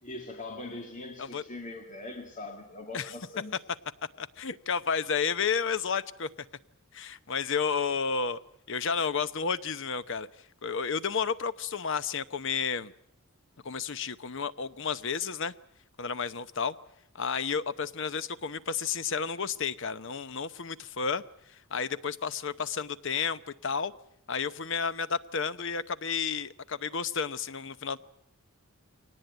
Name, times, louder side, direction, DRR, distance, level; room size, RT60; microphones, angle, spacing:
voice 1, 0.0-3.6, left 2 dB, 35° left, 2.3 m, -41 dB
voice 2, 4.2-6.3 6.9-8.4 8.7-10.3 10.6-12.9 13.6-15.5 16.0-16.7 17.1-21.2 21.7-23.9 24.3-28.0, left 6 dB, 60° left, 0.9 m, -31 dB
23.0 x 19.0 x 9.0 m
head